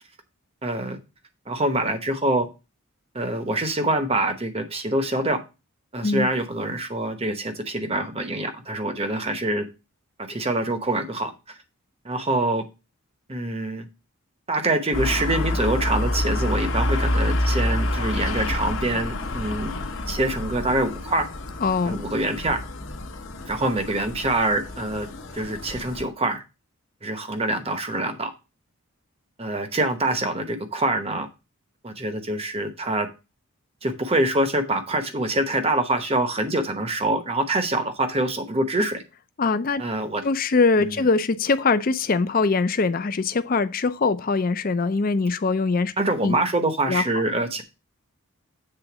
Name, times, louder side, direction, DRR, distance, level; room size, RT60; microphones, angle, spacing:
voice 1, 0.6-1.0 1.5-2.5 3.1-5.4 5.9-9.7 10.2-11.3 12.0-12.6 13.3-13.9 14.5-19.7 20.1-21.3 21.9-22.6 23.5-25.1 25.3-26.4 27.0-28.3 29.4-31.3 31.8-33.1 33.8-39.0 39.8-40.2 40.8-41.0 46.0-47.6, right 2 dB, 25° right, 0.9 m, -25 dB
sound 1, 14.9-26.0, left 1 dB, 60° left, 1.0 m, -28 dB
voice 2, 21.6-22.0 39.4-39.8 40.2-45.9 46.2-46.4 46.9-47.2, left 4 dB, 40° left, 0.5 m, -22 dB
7.7 x 3.8 x 6.0 m
head